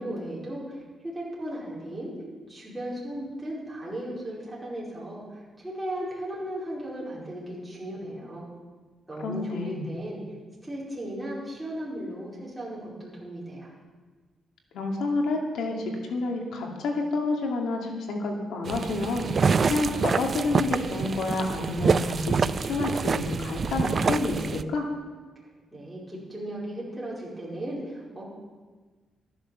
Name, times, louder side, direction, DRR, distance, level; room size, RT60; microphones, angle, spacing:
voice 1, 0.0-2.1 2.5-8.5 9.1-10.2 10.6-13.7 25.7-28.3, right 1 dB, 5° right, -7 dB, 4.7 m, -36 dB
voice 2, 9.2-9.9 14.7-19.3 19.7-24.9, left 3 dB, 80° left, 1 dB, 2.4 m, -29 dB
sound 1, 18.7-24.6, right 5 dB, 35° right, 0.4 m, -26 dB
14.0 x 10.0 x 7.0 m, 1.4 s
cardioid pair, 130°, 0 cm